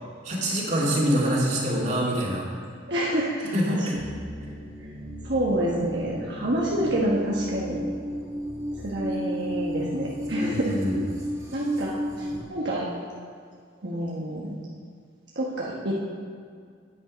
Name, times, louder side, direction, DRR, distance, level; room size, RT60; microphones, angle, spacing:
voice 1, 0.2-2.5 3.5-4.0 10.4-11.0, equal, 40° right, -4 dB, 2.4 m, -25 dB
voice 2, 0.8-1.2 2.9-3.9 4.8-4.9 5.2-7.8 8.8-10.7 11.5-12.9 13.8-14.6 15.3-15.9, right 1 dB, 65° right, -5 dB, 1.3 m, -28 dB
sound 1, 3.9-12.4, equal, 15° right, 2.3 m, -33 dB
10.5 x 9.2 x 5.2 m, 2.2 s
head